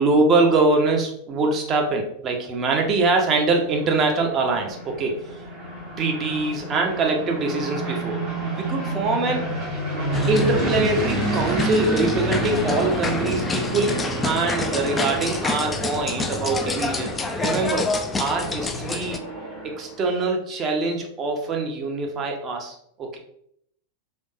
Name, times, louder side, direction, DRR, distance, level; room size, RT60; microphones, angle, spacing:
voice 1, 0.0-5.1 6.0-8.2 8.5-9.5 10.3-17.9 18.2-19.2 19.6-23.2, right 3 dB, 30° right, 2 dB, 0.8 m, -23 dB
sound 1, 3.0-20.1, right 2 dB, 50° right, 1.1 m, -30 dB
sound 2, 10.1-19.2, left 3 dB, 15° left, 0.3 m, -27 dB
3.5 x 3.4 x 2.6 m, 0.71 s
figure-of-eight pair, 90°, 0 cm